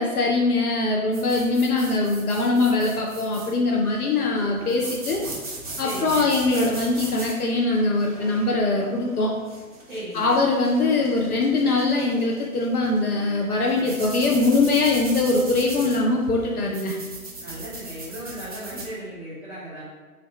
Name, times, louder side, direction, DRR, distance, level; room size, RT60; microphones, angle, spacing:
voice 1, 0.0-5.2 5.8-9.3 10.1-17.0, left 3 dB, 75° left, -1 dB, 0.7 m, -22 dB
sound 1, 1.1-18.9, right 2 dB, 25° right, 0.4 m, -39 dB
voice 2, 5.8-6.4 9.9-10.4 17.4-19.8, right 1 dB, 5° right, -11 dB, 0.8 m, -36 dB
4.0 x 2.6 x 3.1 m, 1.4 s
figure-of-eight pair, 130°, 45 cm